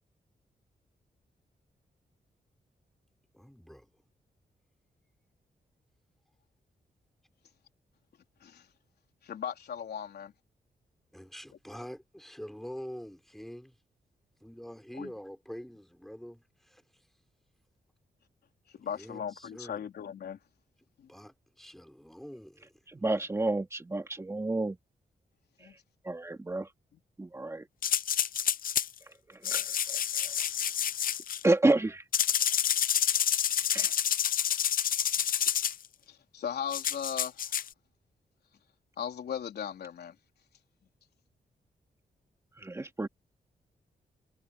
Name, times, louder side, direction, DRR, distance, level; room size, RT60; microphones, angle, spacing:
voice 1, 3.3-3.8 11.1-13.7 14.4-16.4 19.0-19.2 19.5-19.8 21.1-22.7, equal, ahead, 4.1 m, -45 dB
voice 2, 9.2-10.3 11.5-11.6 15.0-15.1 18.8-20.4 21.0-21.1 25.6-25.7 26.9-27.0 36.1-37.5 39.0-40.1, left 8 dB, 90° left, 3.6 m, -37 dB
voice 3, 22.9-24.8 26.1-26.7 27.2-27.6 29.4-29.6 31.4-32.0 33.7-33.9 42.6-43.1, right 2 dB, 15° right, 2.2 m, -29 dB
sound 1, 27.8-28.9 29.4-31.4 32.1-35.8 36.7-37.7, left 9 dB, 60° left, 0.6 m, -28 dB
wide cardioid pair, 145°, 16 cm